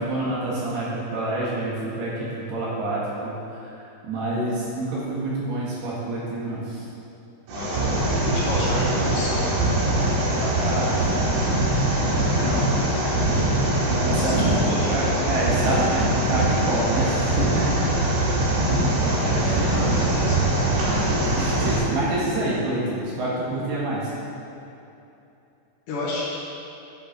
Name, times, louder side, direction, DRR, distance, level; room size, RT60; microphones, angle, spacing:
voice 1, 0.0-6.9 10.4-11.0 14.0-17.7 19.4-19.7 20.8-24.1, right 1 dB, 65° right, -7 dB, 3.3 m, -27 dB
voice 2, 7.5-7.9 8.2-9.4 12.2-12.8 14.1-15.1 19.2-20.4 25.9-26.4, left 2 dB, 65° left, -5 dB, 3.4 m, -31 dB
sound 1, 7.5-21.8, right 1 dB, 85° right, 4.8 m, -22 dB
9.7 x 6.7 x 5.8 m, 2.8 s
omnidirectional pair, 5.7 m